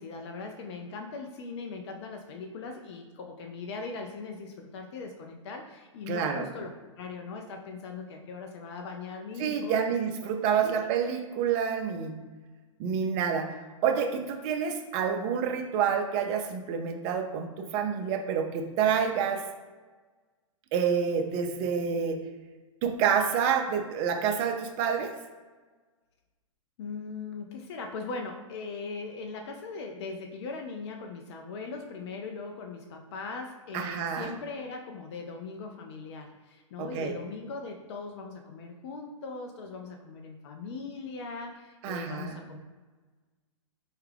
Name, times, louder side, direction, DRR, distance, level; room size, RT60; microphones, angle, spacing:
voice 1, 0.0-6.7 7.0-9.9 10.5-10.8 26.8-42.6, left 4 dB, 55° left, 3 dB, 0.5 m, -40 dB
voice 2, 6.1-6.4 9.4-12.2 12.8-13.6 13.8-19.4 20.7-22.2 22.8-25.1 33.7-34.3 36.8-37.1 41.8-42.4, right 7 dB, 30° right, 4 dB, 0.4 m, -28 dB
4.4 x 2.4 x 3.3 m, 1.3 s
hypercardioid pair, 135°, 17 cm